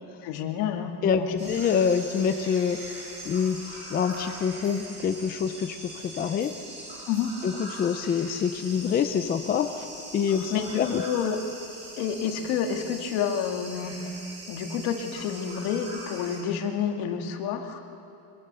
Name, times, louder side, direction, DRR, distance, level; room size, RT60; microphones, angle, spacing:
voice 1, 0.2-1.5 7.1-7.4 10.5-11.4 12.0-14.0 14.5-17.8, left 7 dB, 60° left, 4 dB, 2.1 m, -29 dB
voice 2, 1.0-5.8 6.0-6.5 7.4-9.9 10.1-11.0, left 7 dB, 20° left, 8 dB, 0.5 m, -26 dB
sound 1, 1.4-16.4, right 1 dB, 25° right, 7.5 m, -41 dB
25.0 x 23.5 x 6.8 m, 2.7 s
cardioid pair, 180°, 44 cm